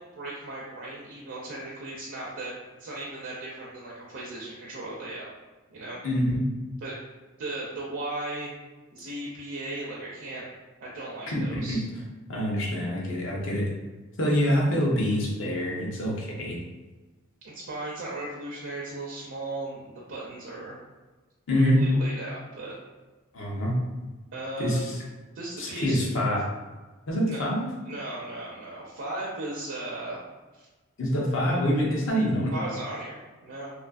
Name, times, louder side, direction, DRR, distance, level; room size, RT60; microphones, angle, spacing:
voice 1, 0.0-2.5 2.8-5.3 5.7-6.0 6.8-7.0 7.4-8.5 8.9-10.5 10.8-11.9 17.4-20.8 21.5-22.8 24.3-24.9 25.3-26.0 27.2-27.5 27.8-30.2 30.5-30.7 32.5-33.7, right 2 dB, 60° right, -5 dB, 0.4 m, -36 dB
voice 2, 6.0-6.5 11.3-11.8 12.3-13.6 14.2-16.6 21.5-21.8 23.3-23.7 24.6-25.0 25.6-26.4 27.1-27.7 31.0-32.5, equal, 60° left, -3 dB, 0.7 m, -25 dB
2.6 x 2.4 x 2.3 m, 1.2 s
head